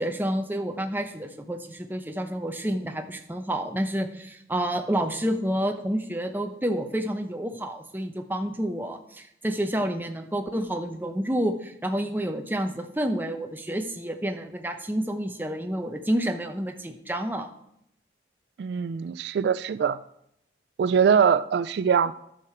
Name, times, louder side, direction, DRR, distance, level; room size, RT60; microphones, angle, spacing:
voice 1, 0.0-17.5, right 1 dB, 10° right, 5 dB, 0.7 m, -29 dB
voice 2, 18.6-20.0 20.8-22.1, right 7 dB, 75° right, 15 dB, 0.3 m, -22 dB
10.5 x 6.6 x 4.4 m, 0.76 s
head